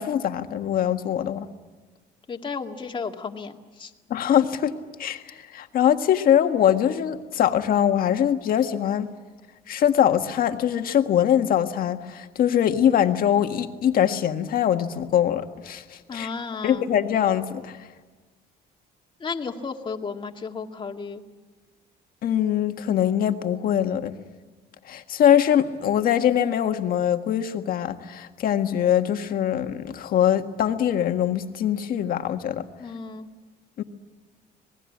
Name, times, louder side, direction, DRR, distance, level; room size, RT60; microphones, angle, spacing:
voice 1, 0.0-1.5 4.1-4.7 5.0-9.1 9.7-16.3 16.6-17.8 22.2-24.2 24.8-32.7 33.8-33.9, left 10 dB, 60° left, 6 dB, 1.7 m, -22 dB
voice 2, 2.3-3.9 16.1-16.9 19.2-21.2 32.8-33.3, left 5 dB, 30° left, 3 dB, 2.2 m, -33 dB
27.0 x 20.0 x 8.6 m, 1.3 s
cardioid pair, 110°, 17 cm